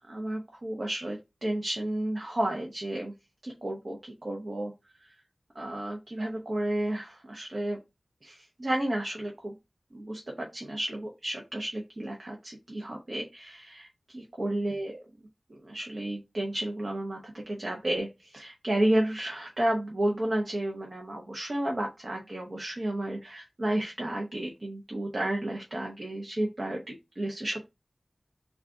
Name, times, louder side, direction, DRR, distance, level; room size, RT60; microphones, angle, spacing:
voice 1, 0.1-3.1 3.4-4.7 5.0-5.1 5.5-7.8 8.2-9.5 9.9-15.0 15.5-27.7, right 1 dB, 55° right, 0 dB, 0.8 m, -32 dB
3.6 x 2.4 x 3.7 m, 0.24 s
wide cardioid pair, 55°, 0 cm